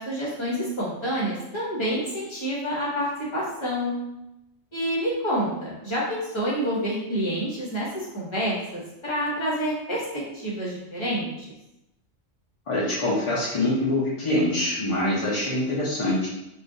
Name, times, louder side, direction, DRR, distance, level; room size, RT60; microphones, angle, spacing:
voice 1, 0.0-4.0 4.7-11.5, equal, 25° left, -5 dB, 0.8 m, -28 dB
voice 2, 12.7-16.3, left 1 dB, 50° left, -6 dB, 0.3 m, -24 dB
3.5 x 2.4 x 2.6 m, 0.89 s
omnidirectional pair, 1.4 m